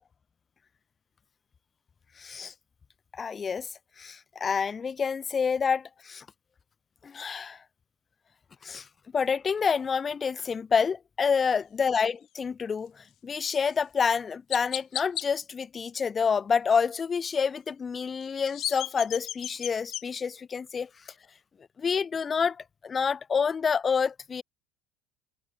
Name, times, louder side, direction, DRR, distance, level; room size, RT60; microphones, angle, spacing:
voice 1, 2.2-2.5 3.1-3.7 4.0-6.3 7.0-7.6 8.6-8.9 9.1-21.1 21.8-24.4, left 6 dB, 30° left, 7.0 m, -28 dB
Chirp tweet, 13.6-13.7 14.5-15.3 18.2-20.0, left 13 dB, 55° left, 7.3 m, -34 dB
supercardioid pair, 90°, 0 cm